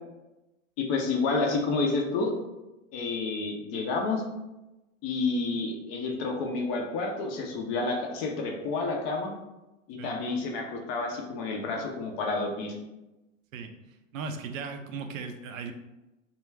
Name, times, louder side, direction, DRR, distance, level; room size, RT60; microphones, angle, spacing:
voice 1, 0.8-2.3 2.9-4.2 5.0-9.3 9.9-12.8, left 3 dB, 35° left, 2 dB, 0.4 m, -29 dB
voice 2, 14.1-15.7, right 5 dB, 75° right, 6 dB, 0.5 m, -37 dB
2.3 x 2.2 x 3.1 m, 1.0 s
hypercardioid pair, 120°, 40 cm